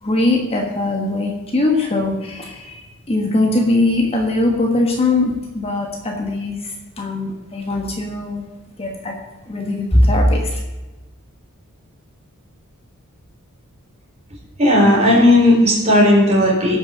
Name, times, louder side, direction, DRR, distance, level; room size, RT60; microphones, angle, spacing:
voice 1, 0.0-8.4 8.8-9.1 9.5-10.6, left 2 dB, 25° left, 1 dB, 1.5 m, -20 dB
voice 2, 14.6-16.8, left 1 dB, 30° right, -2 dB, 4.0 m, -13 dB
15.5 x 6.4 x 6.3 m, 1.1 s
head